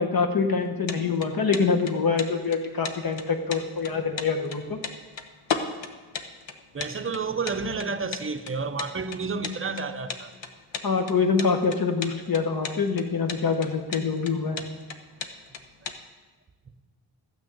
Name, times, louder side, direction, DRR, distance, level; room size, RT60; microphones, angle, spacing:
voice 1, 0.0-4.8 10.8-14.6, left 5 dB, 50° left, 1.2 m, -25 dB
sound 1, 0.6-16.0, left 6 dB, 70° left, 1.1 m, -35 dB
voice 2, 6.7-10.3, right 4 dB, 30° right, 0.7 m, -30 dB
14.0 x 6.2 x 8.6 m
wide cardioid pair, 160°, 47 cm